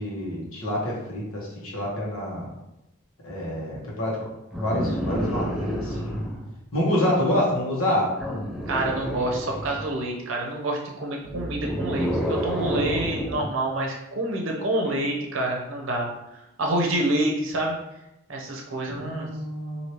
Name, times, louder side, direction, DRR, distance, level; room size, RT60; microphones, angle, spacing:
voice 1, 0.0-2.5 3.2-4.2 4.6-6.2 6.7-8.1 18.9-19.8, left 1 dB, 75° left, -5 dB, 1.2 m, -27 dB
sound 1, 4.5-6.5 8.2-9.9 11.2-13.5 14.8-15.0, equal, ahead, 0.5 m, -29 dB
voice 2, 8.7-16.1 16.6-17.8 18.3-19.3, right 1 dB, 65° right, 0 dB, 0.7 m, -27 dB
3.2 x 2.7 x 2.9 m, 0.90 s
head